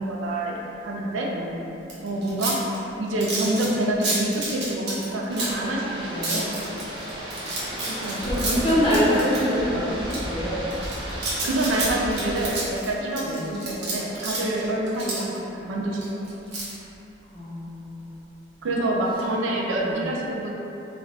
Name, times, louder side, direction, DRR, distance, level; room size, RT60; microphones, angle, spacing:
voice 1, 0.0-1.3 2.0-2.7 3.0-6.5 7.9-8.2 8.5-9.0 11.4-16.3 18.6-20.5, right 1 dB, 85° right, -2 dB, 0.4 m, -27 dB
voice 2, 1.3-1.7 6.1-6.5 8.2-10.7 13.2-13.5 17.3-18.1 19.8-20.0, equal, 25° left, -8 dB, 0.5 m, -25 dB
sound 1, 1.9-5.7 6.2-9.6 10.0-10.2 10.7-15.4 15.9-16.7, right 2 dB, 55° right, 0.7 m, -30 dB
sound 2, 5.3-12.5, equal, 25° right, 0.4 m, -34 dB
2.5 x 2.3 x 3.2 m, 3.0 s
head